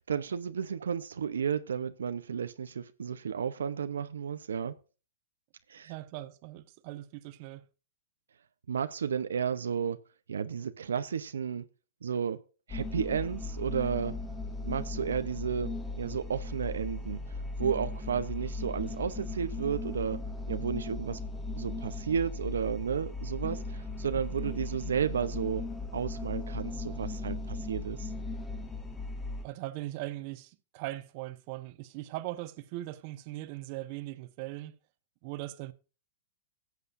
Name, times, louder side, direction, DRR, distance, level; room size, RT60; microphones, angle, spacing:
voice 1, 0.0-4.8 5.7-5.9 8.7-10.0 10.3-11.7 12.0-12.4 12.7-14.2 14.6-20.2 20.5-21.2 21.5-25.6 25.9-28.1, right 7 dB, 85° right, 0.8 m, -33 dB
voice 2, 5.9-7.6 29.4-34.8 35.2-35.7, right 16 dB, 45° right, 1.1 m, -40 dB
sound 1, 12.7-29.5, left 2 dB, 10° left, 1.9 m, -37 dB
17.5 x 7.9 x 2.6 m
hypercardioid pair, 130°, 0 cm